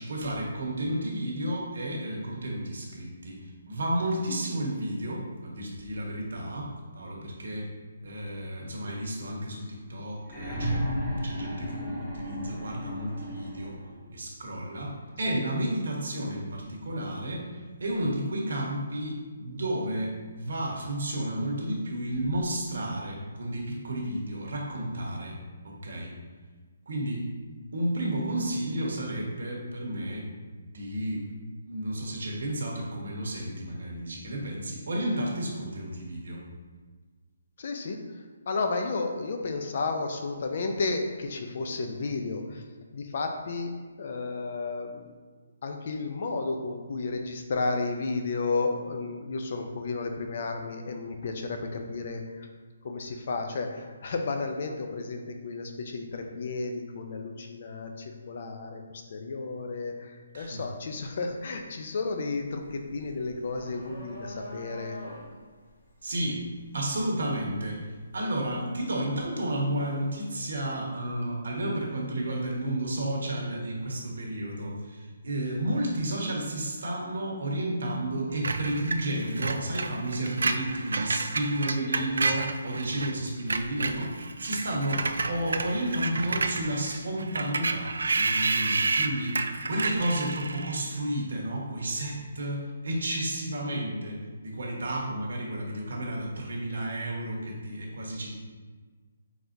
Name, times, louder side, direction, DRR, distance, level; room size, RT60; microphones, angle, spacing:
voice 1, 0.0-7.7 8.0-13.8 14.1-25.4 25.6-26.1 26.9-27.3 27.7-30.3 30.7-31.3 31.7-36.4 60.3-60.6 66.0-66.5 66.7-98.3, right 1 dB, 70° right, -2 dB, 1.2 m, -32 dB
sound 1, 10.2-14.1 15.3-15.4, equal, 10° left, 0.9 m, -33 dB
voice 2, 37.6-38.0 38.5-42.6 42.9-43.7 44.0-45.1 45.6-52.5 52.8-58.8 59.1-65.0 81.8-82.0, left 3 dB, 45° left, 4 dB, 0.5 m, -32 dB
sound 2, 60.5-60.7 61.1-68.1, equal, 70° left, 1.5 m, -45 dB
Screech, 78.4-83.1 83.4-90.9, right 3 dB, 85° right, 0.3 m, -30 dB
4.4 x 4.0 x 2.6 m, 1.5 s
hypercardioid pair, 170°, 0 cm